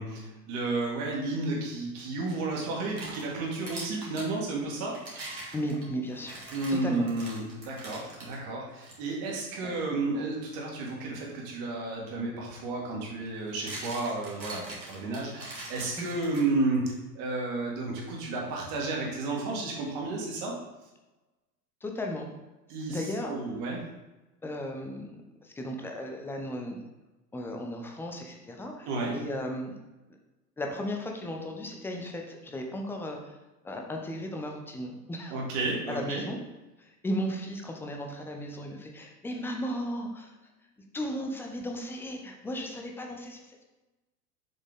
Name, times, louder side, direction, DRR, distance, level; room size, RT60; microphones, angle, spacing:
voice 1, 0.0-5.2 6.5-16.8 17.2-20.5 22.7-23.8 28.9-29.2 35.3-36.2, right 3 dB, 40° right, -2 dB, 2.2 m, -32 dB
sound 1, 2.7-4.3 4.9-8.3 8.8-9.0 9.6-9.8 12.0-12.1 13.3-16.8, right 2 dB, 85° right, 2.3 m, -43 dB
voice 2, 5.5-6.4 6.7-7.0 16.0-16.1 21.8-22.3 22.9-23.3 24.4-25.1 25.4-26.8 27.3-28.9 29.1-29.7 30.6-33.3 33.6-35.3 35.9-36.4 37.0-40.3 40.9-43.6, equal, 5° left, 2 dB, 0.6 m, -35 dB
7.0 x 5.1 x 3.7 m, 1.1 s
figure-of-eight pair, 95°, 50 cm